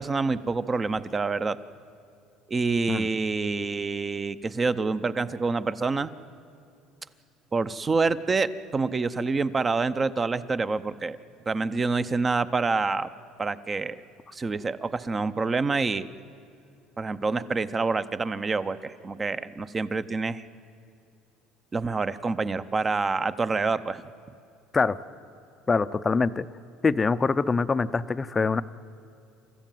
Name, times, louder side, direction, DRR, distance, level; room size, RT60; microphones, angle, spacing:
voice 1, 0.0-1.6 2.5-6.1 7.5-11.2 11.5-13.1 13.4-14.0 14.3-16.1 17.0-20.4 21.7-24.0, right 4 dB, 20° right, 14 dB, 0.7 m, -27 dB
voice 2, 25.7-26.5 26.8-28.6, left 4 dB, 20° left, 13 dB, 0.5 m, -24 dB
28.0 x 14.0 x 9.3 m, 2.5 s
cardioid pair, 130°, 0 cm